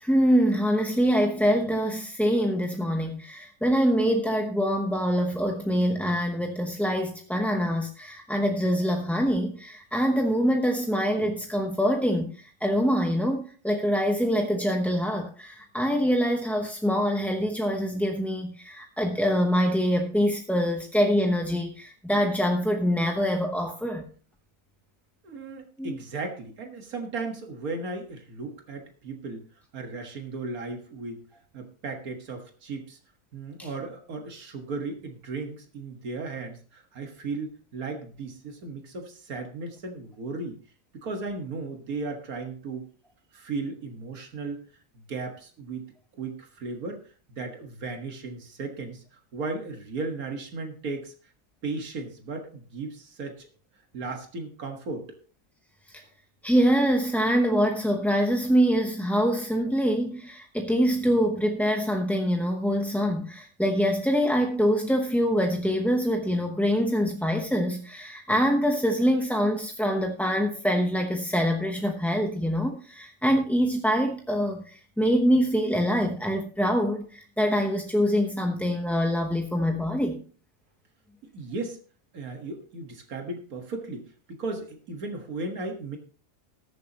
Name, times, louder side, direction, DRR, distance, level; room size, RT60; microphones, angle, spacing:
voice 1, 0.0-12.3 12.6-24.1 25.8-26.0 56.4-74.6 75.0-80.2, equal, ahead, 3 dB, 0.6 m, -24 dB
voice 2, 25.2-29.4 29.7-31.2 31.5-33.0 33.3-40.6 41.0-42.9 43.3-44.6 45.1-47.0 47.3-49.0 49.3-51.1 51.6-53.5 53.9-55.1 81.3-81.8 82.1-84.1 84.4-86.0, right 3 dB, 85° right, 4 dB, 2.0 m, -35 dB
20.0 x 6.9 x 2.9 m, 0.39 s
omnidirectional pair, 1.5 m